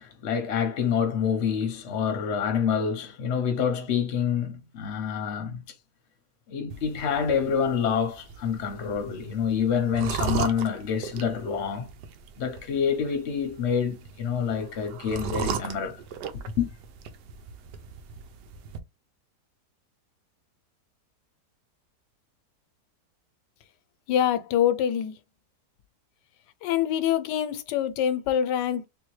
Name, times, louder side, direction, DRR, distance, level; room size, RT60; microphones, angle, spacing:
voice 1, 0.0-5.6 6.5-11.9 12.4-16.0 16.3-16.7, left 7 dB, 55° left, 0.8 m, -27 dB
sound 1, 6.7-18.8, right 6 dB, 90° right, 1.3 m, -37 dB
voice 2, 24.1-25.1 26.6-28.9, left 10 dB, 85° left, 1.2 m, -25 dB
3.6 x 2.8 x 3.1 m
omnidirectional pair, 1.8 m